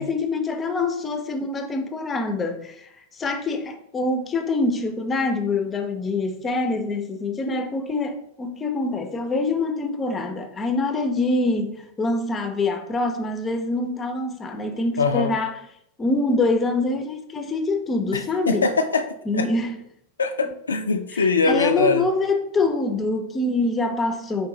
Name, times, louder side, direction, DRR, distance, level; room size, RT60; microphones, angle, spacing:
voice 1, 0.0-2.9 3.2-15.6 16.0-18.7 19.3-19.8 21.4-24.5, left 2 dB, 20° left, 0.5 m, -25 dB
voice 2, 15.0-15.3 18.1-19.1 19.4-19.5 20.2-22.1, left 4 dB, 70° left, 0.3 m, -22 dB
4.6 x 2.5 x 3.7 m
figure-of-eight pair, 90°, 0 cm